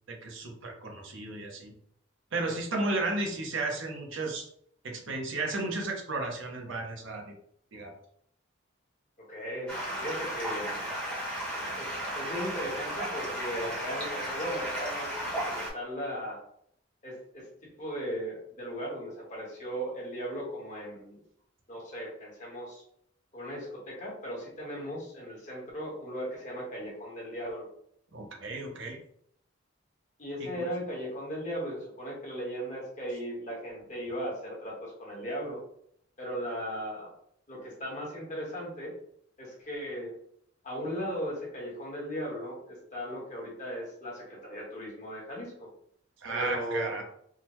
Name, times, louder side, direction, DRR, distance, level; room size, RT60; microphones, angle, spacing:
voice 1, 0.2-1.7 2.3-4.5 4.8-7.3 7.7-7.9 28.1-29.0 30.6-30.7 46.2-47.0, right 2 dB, 80° right, 1 dB, 0.7 m, -33 dB
voice 2, 9.3-9.7 10.0-10.7 11.8-16.4 17.0-17.5 17.8-21.2 21.7-22.8 23.3-27.7 30.2-35.6 36.2-37.1 37.5-38.9 39.4-40.1 40.6-45.7 46.3-46.9, equal, 40° left, -3 dB, 1.1 m, -37 dB
Stream, 9.7-15.7, right 1 dB, 5° left, 0.9 m, -34 dB
3.7 x 2.1 x 2.9 m, 0.68 s
head